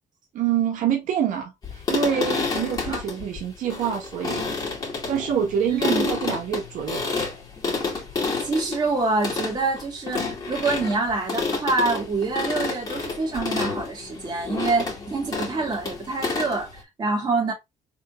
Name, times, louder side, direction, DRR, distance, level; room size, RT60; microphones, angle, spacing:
voice 1, 0.3-1.5 1.9-4.6 5.1-7.1, right 8 dB, 80° right, 1.5 m, -26 dB
sound 1, 1.6-16.8, left 4 dB, 30° left, 2.3 m, -29 dB
voice 2, 5.7-6.0 8.4-17.5, right 3 dB, 35° right, 2.5 m, -26 dB
5.1 x 3.5 x 2.5 m
cardioid pair, 170°, 13 cm